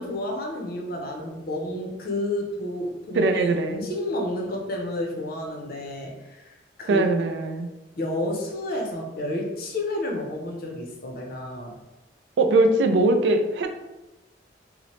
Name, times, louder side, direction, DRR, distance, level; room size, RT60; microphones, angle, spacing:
voice 1, 0.0-3.3 3.7-7.0 8.0-11.8, left 1 dB, 55° left, 1 dB, 0.5 m, -30 dB
voice 2, 3.1-3.8 6.9-7.7 12.4-13.7, right 2 dB, 70° right, 6 dB, 0.3 m, -21 dB
2.8 x 2.0 x 3.0 m, 1.0 s
head